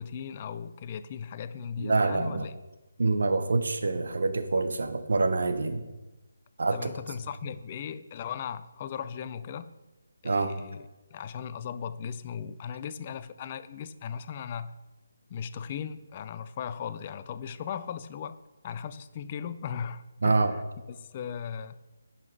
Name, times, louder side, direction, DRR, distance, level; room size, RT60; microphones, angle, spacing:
voice 1, 0.0-2.5 6.7-9.7 10.2-10.8 11.1-14.7 15.3-18.4 18.6-20.6 20.9-21.8, left 7 dB, 30° left, 13 dB, 0.5 m, -37 dB
voice 2, 1.8-2.5 3.0-5.9 6.6-6.9 10.2-10.5 20.2-20.5, right 3 dB, 60° right, 8 dB, 1.1 m, -26 dB
10.5 x 5.8 x 4.7 m, 1.1 s
figure-of-eight pair, 150°, 0 cm